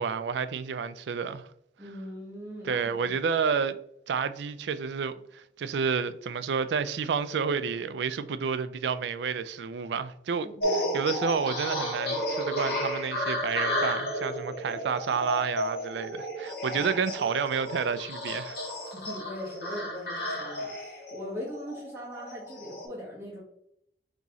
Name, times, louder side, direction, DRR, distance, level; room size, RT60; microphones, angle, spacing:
voice 1, 0.0-1.5 2.6-3.8 4.1-18.6, right 6 dB, 80° right, 0.4 m, -30 dB
voice 2, 1.8-3.1 10.4-10.9 16.7-16.9 18.9-23.4, equal, 15° right, 1.2 m, -40 dB
sound 1, 10.6-22.9, equal, 60° left, 1.3 m, -33 dB
4.0 x 3.0 x 3.6 m
head